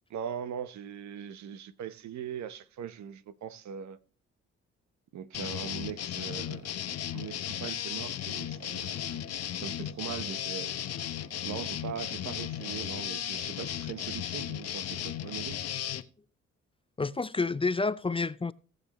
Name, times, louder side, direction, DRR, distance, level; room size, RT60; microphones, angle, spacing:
voice 1, 0.1-4.0 5.1-6.7 7.1-9.2 9.6-10.7 11.4-15.9, right 8 dB, 70° right, 1.0 m, -40 dB
sound 1, 5.3-16.0, left 10 dB, 60° left, 0.9 m, -35 dB
voice 2, 17.0-18.5, left 3 dB, 20° left, 0.5 m, -29 dB
19.0 x 6.7 x 3.0 m
cardioid pair, 75°, 29 cm